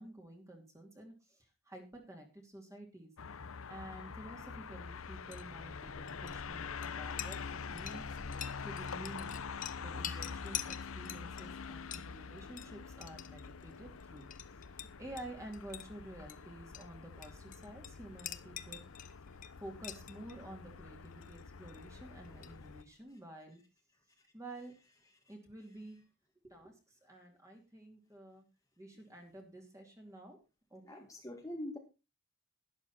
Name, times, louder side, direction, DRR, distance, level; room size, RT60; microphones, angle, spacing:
voice 1, 0.0-3.1 3.7-7.4 7.7-8.4 8.6-14.3 14.7-18.8 19.6-23.6 24.3-24.7 25.3-26.0 26.4-28.4 28.8-30.4 30.7-31.0, right 1 dB, 15° right, 2 dB, 2.7 m, -50 dB
sound 1, 3.2-22.8, left 5 dB, 90° left, 0.7 m, -46 dB
Chink clink, 5.2-23.0, left 10 dB, 40° left, 0.8 m, -49 dB
voice 2, 30.8-31.8, left 1 dB, 15° left, 2 dB, 1.7 m, -43 dB
12.0 x 11.5 x 4.2 m, 0.29 s
head